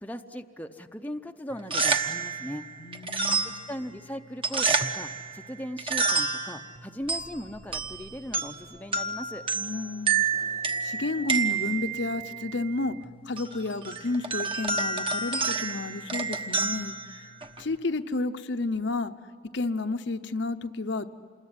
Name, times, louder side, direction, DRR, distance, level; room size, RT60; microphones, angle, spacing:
voice 1, 0.0-2.6 3.4-9.5, equal, 10° left, 5 dB, 0.7 m, -38 dB
sound 1, 1.5-17.7, right 5 dB, 25° right, 1.1 m, -30 dB
voice 2, 2.8-3.7 9.5-13.0 13.3-17.3 17.6-19.1 19.5-21.1, left 3 dB, 60° left, 9 dB, 0.8 m, -31 dB
Race car auto racing / Accelerating revving vroom, 7.0-12.2, right 1 dB, 75° right, 7.0 m, -53 dB
27.5 x 21.5 x 9.9 m, 2.3 s
head